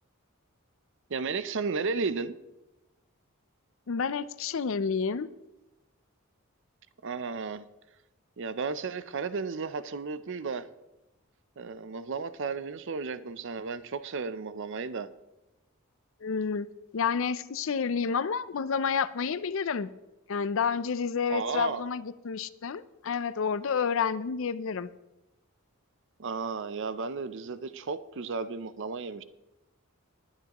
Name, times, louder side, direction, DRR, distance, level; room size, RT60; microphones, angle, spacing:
voice 1, 1.1-2.3 7.0-7.6 8.4-10.7 11.6-15.1 21.3-21.8 26.2-29.2, right 4 dB, 60° right, 13 dB, 0.6 m, -33 dB
voice 2, 3.9-5.3 16.2-16.7 16.9-19.9 20.3-24.9, left 6 dB, 65° left, 16 dB, 0.5 m, -29 dB
19.5 x 9.4 x 3.0 m, 0.97 s
head